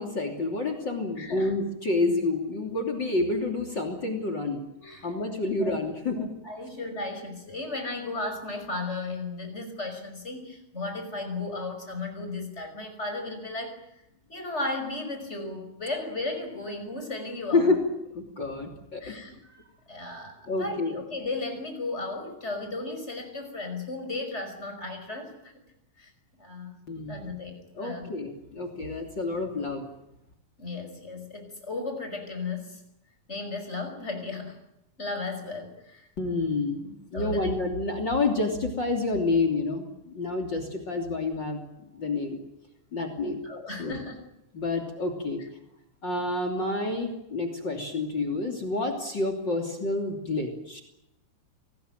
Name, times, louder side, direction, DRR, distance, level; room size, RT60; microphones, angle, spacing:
voice 1, 0.0-4.6 5.0-6.3 17.5-17.8 18.1-19.2 20.5-21.0 26.9-27.3 27.8-29.8 36.2-42.4 42.9-43.4 43.8-44.0 44.5-45.4 46.0-50.8, left 3 dB, 35° left, 7 dB, 3.5 m, -28 dB
voice 2, 1.2-1.5 4.8-5.2 5.5-5.8 6.1-14.0 14.3-17.8 19.0-25.5 26.0-26.1 26.4-26.7 27.1-28.1 28.7-28.8 30.6-32.8 33.3-34.6 35.0-36.1 37.1-37.5 43.4-44.2 45.4-45.5, left 2 dB, 20° left, 6 dB, 5.7 m, -35 dB
28.5 x 20.0 x 9.2 m, 0.86 s
omnidirectional pair, 3.4 m